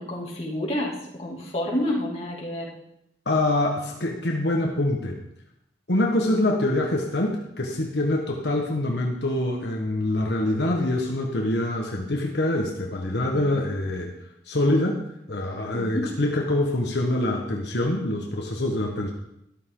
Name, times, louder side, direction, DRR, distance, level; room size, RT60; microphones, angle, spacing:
voice 1, 0.0-2.7 13.2-13.5 15.7-16.1, left 1 dB, 35° left, -3 dB, 2.8 m, -29 dB
voice 2, 3.2-5.2 5.9-14.1 14.4-19.1, left 1 dB, 70° left, 0 dB, 1.5 m, -25 dB
13.0 x 12.5 x 3.9 m, 0.80 s
head